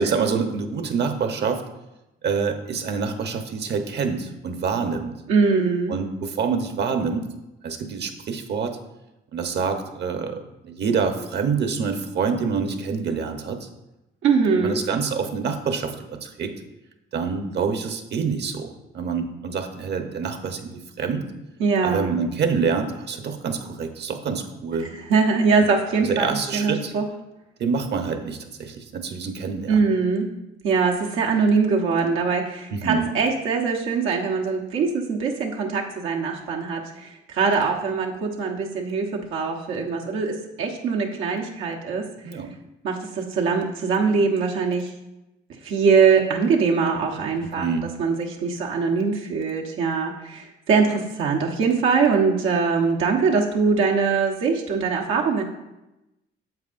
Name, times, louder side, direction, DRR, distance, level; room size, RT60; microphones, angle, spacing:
voice 1, 0.0-1.6 2.2-5.1 5.9-7.3 7.6-8.8 9.3-13.7 14.5-16.5 17.1-21.3 21.8-24.9 26.0-26.9 27.6-29.8 32.7-33.1 42.2-42.5 47.5-47.9, right 5 dB, 60° right, 6 dB, 1.0 m, -26 dB
voice 2, 5.3-5.9 14.2-14.8 21.6-22.1 24.9-27.0 29.7-30.3 30.6-42.0 42.8-44.9 45.6-55.4, right 5 dB, 85° right, -1 dB, 1.1 m, -22 dB
9.4 x 7.4 x 2.6 m, 0.95 s
cardioid pair, 90°, 20 cm